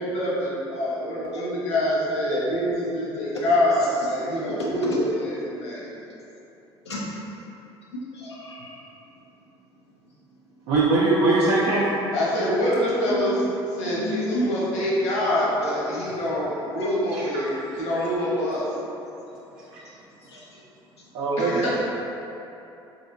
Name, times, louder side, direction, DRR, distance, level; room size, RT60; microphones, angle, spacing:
voice 1, 0.0-5.9 12.1-18.7 21.4-21.8, left 1 dB, 60° left, -7 dB, 1.1 m, -25 dB
voice 2, 8.1-8.8 13.8-14.6 15.6-16.0 16.8-16.9 20.2-20.6, left 1 dB, 90° left, -5 dB, 0.6 m, -32 dB
voice 3, 10.7-12.0 17.1-17.6 21.1-21.6, right 2 dB, 55° right, -6 dB, 0.5 m, -22 dB
4.1 x 3.0 x 2.5 m, 2.9 s
hypercardioid pair, 60°, 14 cm